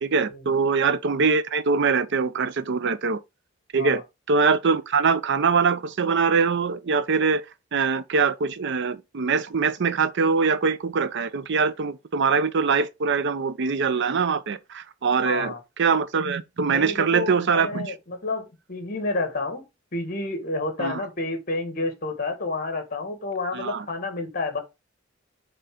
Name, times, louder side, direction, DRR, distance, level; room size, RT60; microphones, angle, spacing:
voice 1, 0.0-3.2 3.7-4.0 4.3-7.4 7.7-17.9 20.8-21.0 23.5-23.9, right 5 dB, 60° right, 0.6 m, -23 dB
voice 2, 15.2-15.6 16.7-19.6 19.9-24.6, left 2 dB, 45° left, 1.8 m, -30 dB
6.8 x 3.8 x 3.7 m
head